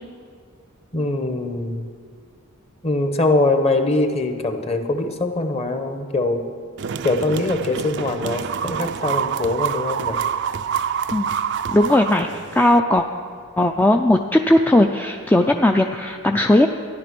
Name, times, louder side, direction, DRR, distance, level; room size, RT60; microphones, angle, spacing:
voice 1, 0.9-1.9 2.8-6.4 7.0-10.2, left 2 dB, 30° left, 7 dB, 1.1 m, -22 dB
sound 1, 6.8-12.8, right 7 dB, 55° right, 0.4 m, -27 dB
voice 2, 11.7-13.1 13.6-16.7, left 1 dB, 10° left, 4 dB, 0.4 m, -17 dB
13.5 x 11.0 x 6.1 m, 2.2 s
head